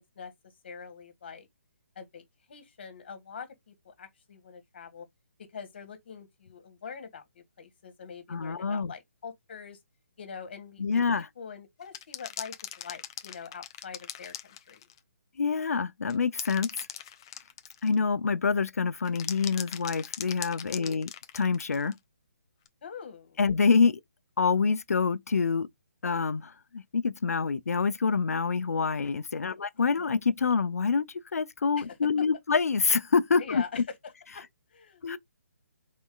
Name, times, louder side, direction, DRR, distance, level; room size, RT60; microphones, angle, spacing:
voice 1, 0.6-1.5 2.0-2.2 2.5-5.1 5.5-9.8 10.2-11.0 11.4-14.9 20.7-21.0 22.8-23.4 29.5-30.1 31.8-31.9 32.2-32.3 33.4-34.4 34.7-35.2, left 6 dB, 45° left, 1.8 m, -44 dB
voice 2, 8.3-8.9 10.8-11.3 15.4-16.7 17.8-21.1 21.3-21.9 23.4-24.0 24.4-25.7 26.0-31.0 31.3-33.6 35.0-35.2, left 5 dB, 80° left, 0.7 m, -26 dB
sound 1, 11.9-15.0 16.1-18.0 19.0-22.0 22.7-22.8, left 10 dB, 20° left, 0.3 m, -40 dB
4.2 x 3.1 x 3.9 m
hypercardioid pair, 170°, 8 cm